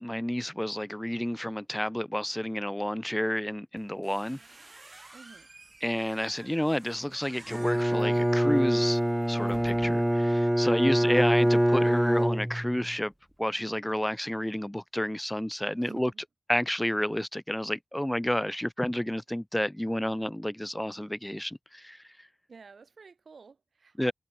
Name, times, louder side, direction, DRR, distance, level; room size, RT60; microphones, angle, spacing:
voice 1, 0.0-4.4 4.9-5.0 5.8-9.0 9.3-13.1 13.4-16.1 16.5-22.0 24.0-24.1, equal, 10° left, 1.0 m, -30 dB
sound 1, 3.8-10.3, right 2 dB, 45° right, 3.6 m, -51 dB
voice 2, 5.1-5.5 10.8-11.1 15.8-16.1 22.5-24.1, right 5 dB, 80° right, 2.3 m, -51 dB
Bowed string instrument, 7.5-12.9, equal, 5° right, 0.4 m, -25 dB
cardioid pair, 45°, 0 cm